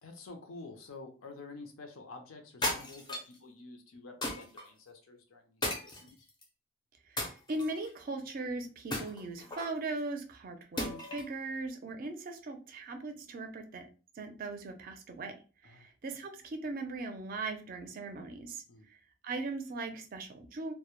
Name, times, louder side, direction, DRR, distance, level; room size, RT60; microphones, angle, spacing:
voice 1, 0.0-6.3 15.6-15.9 18.7-18.9, left 3 dB, 80° left, 5 dB, 0.5 m, -49 dB
sound 1, 2.6-3.4 4.2-4.7 5.6-6.4 7.2-7.9 8.9-9.8 10.8-11.3, left 1 dB, 20° left, 0.4 m, -36 dB
voice 2, 7.1-13.9 14.2-15.3 15.6-18.6 18.9-19.0 19.2-20.7, right 3 dB, 45° right, 5 dB, 0.4 m, -39 dB
2.1 x 2.0 x 2.9 m, 0.35 s
head